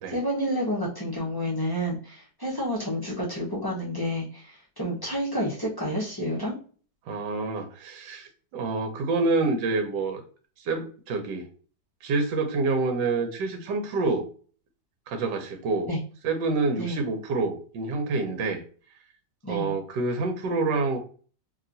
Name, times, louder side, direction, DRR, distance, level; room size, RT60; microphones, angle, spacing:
voice 1, 0.1-6.5 15.9-16.0 16.8-17.0 19.4-19.7, equal, 30° left, -6 dB, 0.4 m, -29 dB
voice 2, 7.1-10.2 10.6-11.4 12.0-14.2 15.1-15.9 16.2-18.6 19.5-21.0, right 3 dB, 75° right, 6 dB, 1.3 m, -27 dB
2.9 x 2.9 x 2.5 m, 0.41 s
omnidirectional pair, 2.0 m